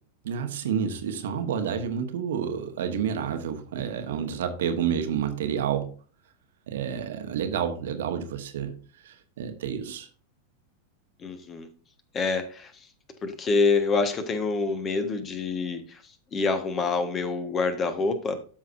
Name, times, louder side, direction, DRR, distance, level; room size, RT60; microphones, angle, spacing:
voice 1, 0.2-5.9 6.7-8.8 9.0-10.1, right 8 dB, 60° right, 1.3 m, -29 dB
voice 2, 11.2-11.7 12.1-12.7 13.2-16.0 16.3-18.4, left 4 dB, 25° left, 1.4 m, -26 dB
13.0 x 6.2 x 2.6 m
figure-of-eight pair, 90°, 0 cm